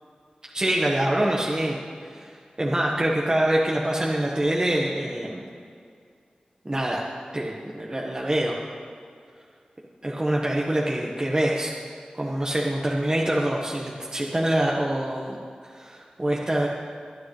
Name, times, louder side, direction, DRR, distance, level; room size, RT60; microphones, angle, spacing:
voice 1, 0.5-1.8 2.1-5.5 6.6-7.0 7.3-8.6 10.0-11.7 12.1-15.4 15.7-16.7, right 1 dB, 30° right, -3 dB, 1.5 m, -25 dB
23.5 x 9.5 x 3.3 m, 2.2 s
wide cardioid pair, 60°, 3 cm